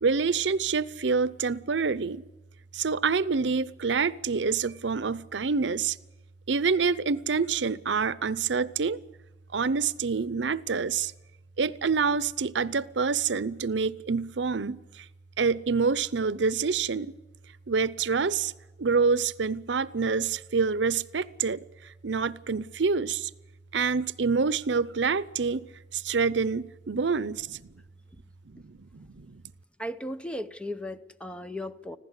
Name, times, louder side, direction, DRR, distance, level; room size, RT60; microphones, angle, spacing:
voice 1, 0.0-2.2 2.7-6.0 6.5-9.0 9.5-11.1 11.6-15.1 15.4-17.1 17.7-18.5 18.8-23.3 23.7-25.6 25.9-27.6 28.5-29.4, right 5 dB, 85° right, 0.7 m, -27 dB
voice 2, 29.8-32.0, left 1 dB, 5° left, 0.8 m, -36 dB
25.5 x 15.5 x 8.2 m
head